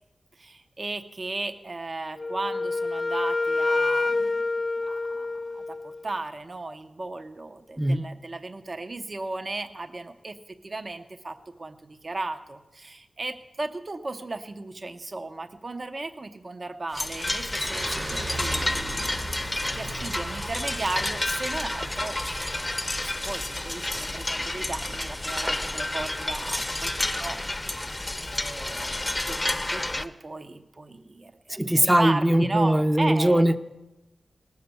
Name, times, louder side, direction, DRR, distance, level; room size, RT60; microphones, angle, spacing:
voice 1, 0.4-4.4 4.8-27.8 28.1-33.4, right 2 dB, 45° right, 8 dB, 0.8 m, -36 dB
Wind instrument woodwind instrument, 2.2-6.0, left 3 dB, 40° left, 0.4 m, -27 dB
sound 1, 16.9-30.1, left 1 dB, 20° left, 0.7 m, -30 dB
sound 2, 17.6-23.0, right 2 dB, 60° right, 4.8 m, -38 dB
voice 2, 31.5-33.6, right 1 dB, 15° right, 11 dB, 0.7 m, -21 dB
19.0 x 6.6 x 6.9 m, 1.0 s
cardioid pair, 55°, 0 cm